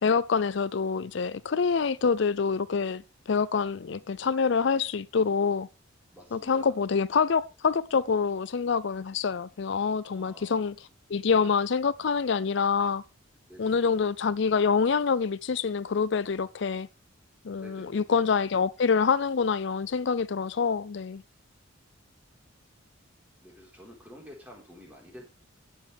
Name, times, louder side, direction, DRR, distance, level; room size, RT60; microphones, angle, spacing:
voice 1, 0.0-3.0 3.3-5.7 6.3-10.7 11.1-13.0 13.6-16.9 17.4-21.2, left 5 dB, 60° left, 0.5 m, -26 dB
voice 2, 6.1-6.8 10.1-10.6 13.5-13.9 17.6-18.3 23.4-25.2, equal, 10° right, 4.4 m, -49 dB
18.0 x 7.4 x 3.5 m
head